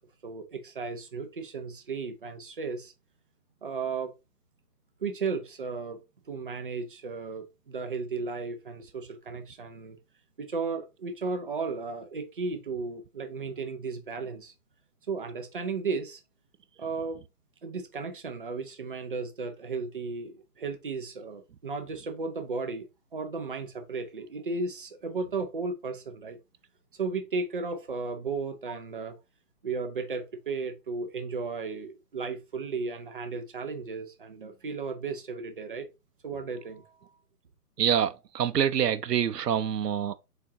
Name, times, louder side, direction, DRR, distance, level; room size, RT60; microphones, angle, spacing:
voice 1, 0.2-2.9 3.6-4.1 5.0-10.0 10.4-14.5 15.1-16.2 16.8-17.2 17.6-26.4 26.9-29.2 29.6-35.9 36.2-36.9, right 4 dB, 35° right, 0.7 m, -35 dB
voice 2, 37.8-40.1, right 9 dB, 85° right, 0.7 m, -26 dB
4.4 x 4.3 x 2.7 m
hypercardioid pair, 160°, 47 cm